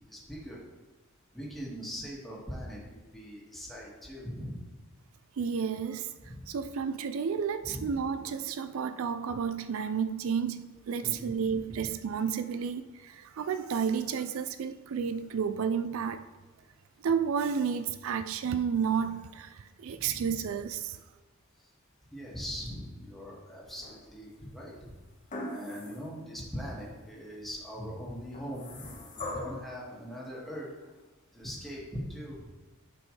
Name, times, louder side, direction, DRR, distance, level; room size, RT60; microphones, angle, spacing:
voice 1, 0.1-0.6 1.3-4.7 6.2-6.5 7.7-8.0 11.0-11.9 19.9-20.3 22.1-24.9 25.5-30.7 31.3-32.5, equal, ahead, 2.0 m, -41 dB
voice 2, 5.4-16.3 17.0-21.0, right 6 dB, 70° right, 0.4 m, -31 dB
sound 1, 23.7-24.3 25.3-26.1 26.6-26.7 28.3-29.7 30.8-30.9, left 1 dB, 40° left, 1.5 m, -41 dB
11.5 x 5.1 x 3.3 m
head